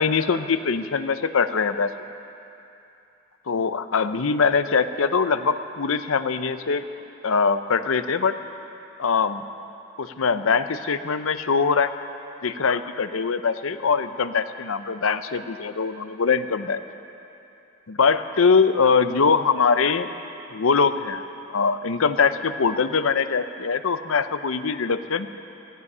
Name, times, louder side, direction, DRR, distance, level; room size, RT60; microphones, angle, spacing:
voice 1, 0.0-2.1 3.5-6.8 7.2-8.3 9.0-9.4 10.0-11.9 12.4-16.8 17.9-20.1 20.5-21.2 21.5-25.3, left 5 dB, 70° left, 11 dB, 0.6 m, -22 dB
17.0 x 15.0 x 5.5 m, 2.8 s
head